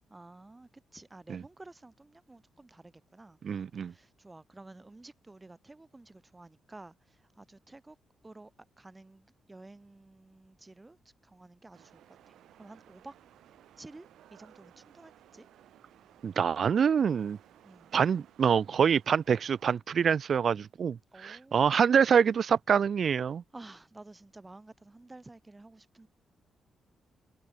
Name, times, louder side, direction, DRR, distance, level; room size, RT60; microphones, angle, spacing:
voice 1, 0.1-3.4 3.8-8.0 8.2-8.5 8.8-11.0 11.2-12.0 12.3-13.2 13.8-15.5 17.6-18.0 21.1-21.9 23.5-26.1, right 2 dB, 20° right, 5.3 m, -52 dB
voice 2, 3.4-3.9 16.2-17.4 17.9-23.4, right 7 dB, 55° right, 0.5 m, -26 dB
sound 1, 11.7-19.8, right 12 dB, 80° right, 3.3 m, -59 dB
cardioid pair, 75°, 0 cm